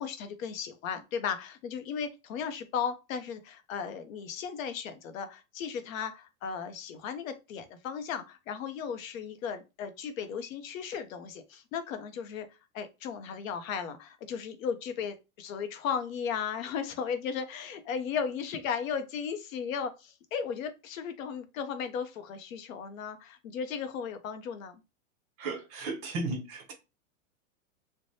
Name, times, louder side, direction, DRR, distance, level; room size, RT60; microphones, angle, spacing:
voice 1, 0.0-12.5 12.7-24.8, left 7 dB, 75° left, 0.7 m, -36 dB
voice 2, 25.4-26.7, right 3 dB, 30° right, 0.6 m, -35 dB
3.3 x 2.1 x 2.6 m
supercardioid pair, 160°, 40 cm